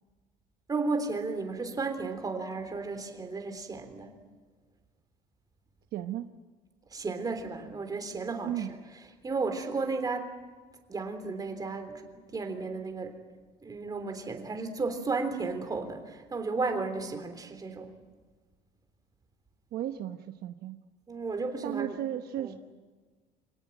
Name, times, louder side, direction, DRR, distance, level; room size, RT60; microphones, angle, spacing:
voice 1, 0.7-4.2 6.9-8.6 9.2-10.3 10.9-12.0 12.3-13.1 13.6-17.9 21.1-22.0 22.4-22.5, right 3 dB, 20° right, 6 dB, 3.4 m, -33 dB
voice 2, 5.9-6.3 8.4-8.7 19.7-20.8 21.6-22.6, right 11 dB, 60° right, 7 dB, 1.1 m, -34 dB
27.0 x 18.0 x 9.2 m, 1.4 s
cardioid pair, 130°, 18 cm